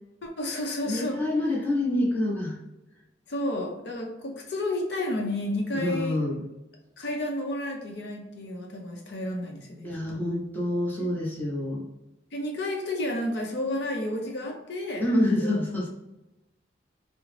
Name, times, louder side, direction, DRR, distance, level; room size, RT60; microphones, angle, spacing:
voice 1, 0.2-1.2 3.3-6.3 7.0-10.2 12.3-15.1, left 1 dB, 65° left, 1 dB, 0.6 m, -31 dB
voice 2, 0.9-2.6 5.7-6.4 9.8-11.8 15.0-15.9, left 1 dB, 10° left, -4 dB, 0.7 m, -27 dB
3.7 x 2.0 x 3.1 m, 0.93 s
head